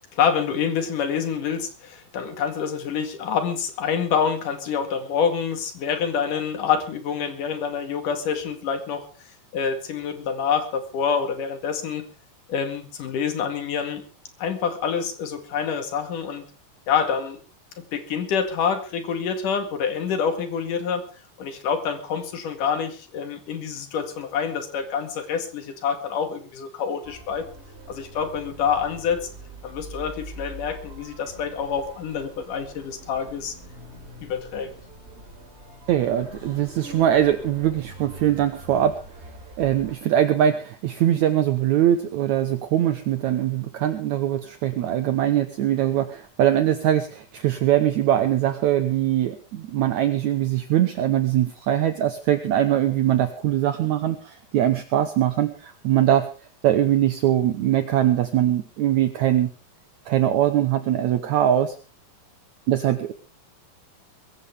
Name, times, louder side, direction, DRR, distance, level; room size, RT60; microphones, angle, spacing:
voice 1, 0.1-9.1 9.5-12.0 12.5-14.0 14.4-16.5 16.9-17.4 17.8-21.0 21.4-27.5 27.9-29.3 29.6-33.6 34.2-34.7, left 7 dB, 65° left, 7 dB, 3.6 m, -27 dB
sound 1, 27.0-40.0, right 1 dB, 20° right, 3.4 m, -43 dB
voice 2, 35.9-39.0 39.6-56.3 56.6-59.5 60.1-61.8 62.7-63.1, right 11 dB, 70° right, 9 dB, 2.0 m, -22 dB
21.5 x 15.5 x 3.5 m, 0.36 s
omnidirectional pair, 4.0 m